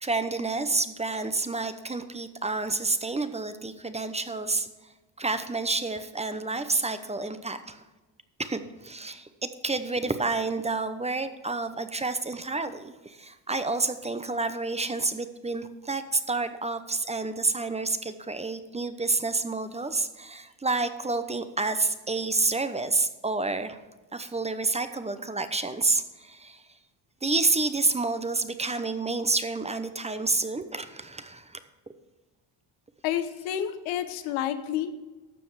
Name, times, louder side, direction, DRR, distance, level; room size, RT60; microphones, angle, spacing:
voice 1, 0.0-4.7 5.2-7.8 8.4-23.8 24.1-26.6 27.2-31.6, right 3 dB, 15° right, 10 dB, 0.8 m, -29 dB
voice 2, 33.0-34.9, left 10 dB, 90° left, 10 dB, 1.0 m, -29 dB
12.5 x 6.9 x 4.8 m, 1.2 s
supercardioid pair, 80°, 45 cm